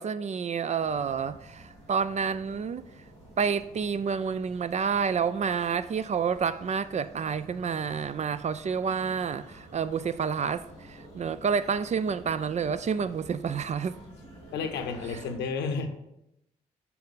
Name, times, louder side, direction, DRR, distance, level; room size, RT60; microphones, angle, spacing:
voice 1, 0.0-2.8 3.4-14.0, right 6 dB, 40° right, 0.4 m, -29 dB
sound 1, 0.8-15.3, right 1 dB, 85° right, 2.6 m, -50 dB
voice 2, 14.5-15.9, left 5 dB, 80° left, 0.8 m, -31 dB
7.0 x 4.5 x 3.9 m
hypercardioid pair, 45°, 18 cm